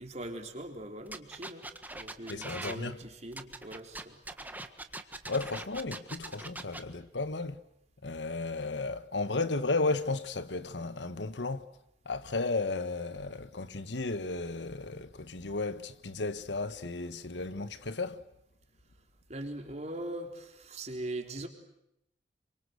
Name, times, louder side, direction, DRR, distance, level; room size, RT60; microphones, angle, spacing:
voice 1, 0.0-4.2 19.3-21.5, right 1 dB, 40° right, 3.9 m, -41 dB
sound 1, 1.1-2.8 3.3-6.8, right 2 dB, 10° right, 1.5 m, -42 dB
voice 2, 2.3-3.0 5.3-7.6 8.0-11.6 12.0-18.2, left 3 dB, 90° left, 1.4 m, -34 dB
27.5 x 25.0 x 8.2 m
head